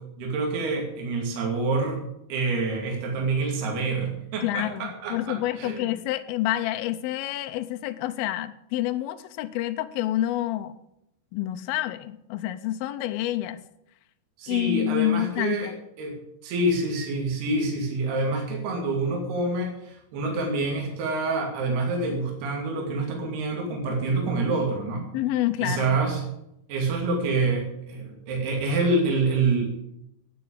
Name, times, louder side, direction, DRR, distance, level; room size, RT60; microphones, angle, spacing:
voice 1, 0.2-2.0 2.3-5.9 14.4-15.7 16.0-25.1 25.6-26.2 26.7-29.7, right 3 dB, 70° right, 1 dB, 4.4 m, -27 dB
voice 2, 4.4-10.8 11.3-13.6 14.5-15.8 25.1-26.0, left 14 dB, 80° left, 9 dB, 2.3 m, -28 dB
12.0 x 9.5 x 8.6 m, 0.81 s
omnidirectional pair, 4.8 m